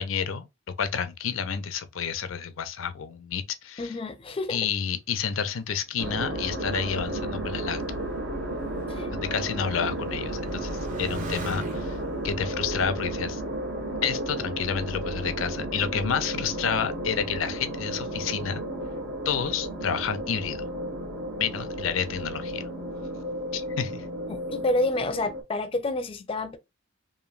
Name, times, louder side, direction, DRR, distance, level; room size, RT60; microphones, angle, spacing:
voice 1, 0.0-4.0 4.5-8.0 9.1-12.0 12.2-13.4 14.0-18.6 19.2-20.6 21.4-22.6 23.5-24.0, left 7 dB, 85° left, 0.5 m, -30 dB
voice 2, 3.8-4.6 8.9-9.1 24.3-26.6, left 2 dB, 30° left, 0.4 m, -29 dB
Motorcycle, 5.4-14.4 15.2-15.8, right 2 dB, 40° right, 0.7 m, -44 dB
sound 1, 6.0-25.4, right 1 dB, 75° right, 1.1 m, -33 dB
2.9 x 2.5 x 2.4 m
head